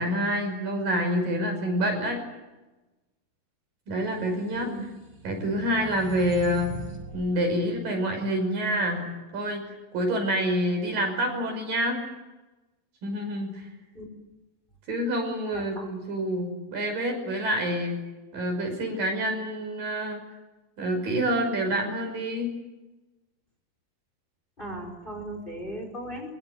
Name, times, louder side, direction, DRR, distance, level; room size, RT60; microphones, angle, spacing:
voice 1, 0.0-2.2 3.9-4.7 5.2-6.7 7.1-9.0 9.3-9.7 9.9-12.0 13.0-13.7 14.9-18.0 18.3-20.2 20.8-22.5, equal, 65° right, 3 dB, 7.5 m, -27 dB
sound 1, 4.3-7.3, right 5 dB, 80° right, 7.4 m, -40 dB
voice 2, 4.5-4.8 13.9-14.1 15.5-15.9 24.6-26.4, right 1 dB, 15° left, 4 dB, 4.6 m, -37 dB
24.5 x 23.0 x 8.2 m, 1.1 s
omnidirectional pair, 4.2 m